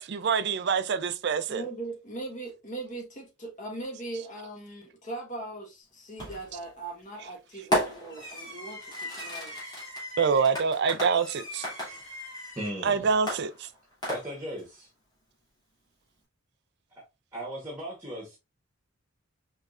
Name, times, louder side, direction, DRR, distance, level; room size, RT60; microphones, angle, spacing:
voice 1, 0.0-1.7 10.2-11.7 12.8-13.7, right 5 dB, 55° right, 0.4 m, -26 dB
voice 2, 1.5-9.8, right 2 dB, 40° left, 1.2 m, -40 dB
Fireworks, 6.2-6.6 7.7-12.8 13.3-14.6, equal, 20° left, 2.2 m, -34 dB
voice 3, 12.5-13.1 14.1-14.9 17.3-18.4, equal, 15° right, 1.1 m, -37 dB
4.6 x 3.2 x 2.4 m
head